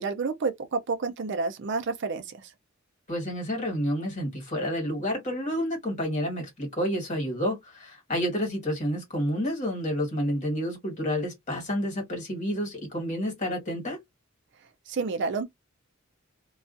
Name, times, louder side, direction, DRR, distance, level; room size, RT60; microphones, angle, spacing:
voice 1, 0.0-2.2 14.9-15.4, right 4 dB, 55° right, 0.5 m, -29 dB
voice 2, 3.1-14.0, equal, 35° left, 1.5 m, -29 dB
2.4 x 2.3 x 2.4 m
head